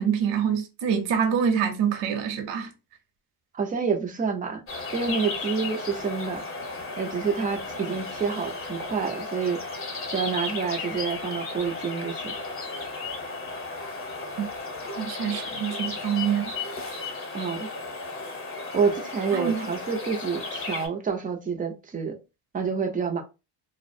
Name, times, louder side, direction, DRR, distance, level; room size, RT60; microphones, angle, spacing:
voice 1, 0.0-2.7 14.4-14.5 15.0-16.6 19.3-19.7, right 7 dB, 65° right, 0.7 m, -26 dB
voice 2, 3.5-4.6 4.9-6.4 7.0-9.6 10.1-12.3 17.3-17.7 18.7-22.2 22.5-23.2, right 5 dB, 20° right, 0.3 m, -28 dB
sound 1, 4.7-20.9, left 3 dB, 30° left, 0.8 m, -34 dB
2.4 x 2.0 x 2.5 m
cardioid pair, 110°, 47 cm